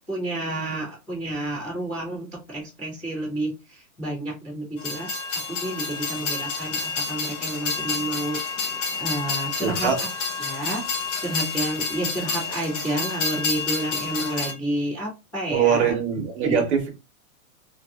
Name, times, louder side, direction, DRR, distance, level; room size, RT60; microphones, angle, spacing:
voice 1, 0.1-8.4 9.0-10.1 10.4-10.9 11.2-16.0 16.4-16.6, right 1 dB, 5° left, 0.3 m, -30 dB
Train, 4.8-14.5, left 4 dB, 55° left, 1.0 m, -29 dB
voice 2, 9.6-9.9 15.5-16.9, right 7 dB, 50° right, 1.1 m, -22 dB
2.6 x 2.5 x 2.2 m
hypercardioid pair, 160°, 43 cm